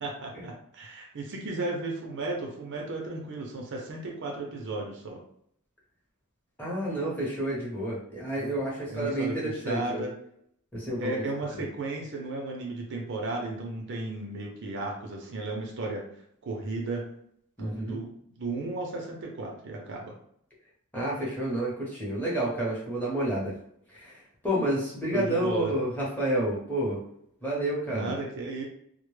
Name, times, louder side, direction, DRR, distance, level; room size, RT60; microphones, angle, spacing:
voice 1, 0.0-5.2 8.4-8.5 8.9-10.1 11.0-16.0 16.4-17.1 17.6-20.2 25.1-25.7 27.9-28.6, right 2 dB, 55° right, 0 dB, 0.5 m, -34 dB
voice 2, 6.6-10.0 10.7-11.1 17.6-18.0 20.9-23.5 23.9-24.2 24.4-27.0 27.4-28.2, right 1 dB, 10° left, -6 dB, 0.8 m, -30 dB
2.1 x 2.0 x 3.1 m, 0.68 s
head